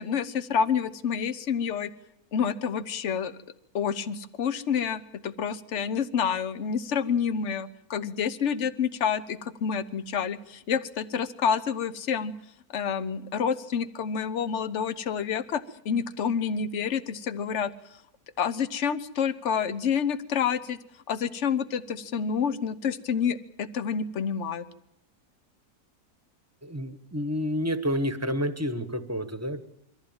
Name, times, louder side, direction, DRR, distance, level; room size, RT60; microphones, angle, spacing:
voice 1, 0.0-1.9 2.3-3.4 3.7-12.3 12.7-17.7 18.4-20.8 21.1-24.6, left 7 dB, 50° left, 15 dB, 1.1 m, -28 dB
voice 2, 26.6-29.6, equal, 10° right, 10 dB, 1.2 m, -29 dB
23.5 x 14.5 x 8.9 m, 0.79 s
omnidirectional pair, 1.7 m